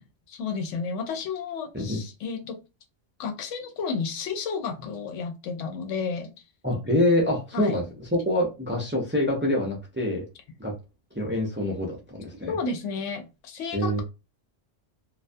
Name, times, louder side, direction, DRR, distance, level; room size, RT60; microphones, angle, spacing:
voice 1, 0.3-2.6 3.2-6.3 7.5-7.8 12.5-14.0, left 5 dB, 85° left, 0.9 m, -32 dB
voice 2, 6.6-10.2 10.6-10.7 11.1-12.6 13.7-14.0, left 1 dB, 20° right, 0.3 m, -26 dB
2.3 x 2.2 x 2.5 m
omnidirectional pair, 1.2 m